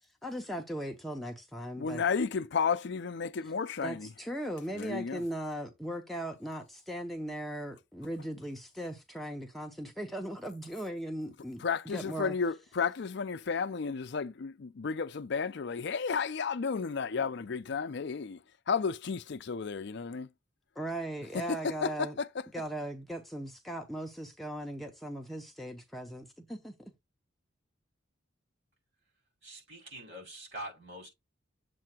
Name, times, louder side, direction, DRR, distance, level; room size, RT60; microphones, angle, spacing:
voice 1, 0.2-2.0 3.8-12.4 20.8-22.2 22.5-26.7, right 1 dB, ahead, 0.6 m, -38 dB
voice 2, 1.8-4.1 4.7-5.2 11.6-18.4 18.7-20.3 21.5-22.3, left 5 dB, 60° left, 0.5 m, -32 dB
voice 3, 29.4-31.1, right 1 dB, 55° right, 5.5 m, -44 dB
7.6 x 2.8 x 5.9 m
head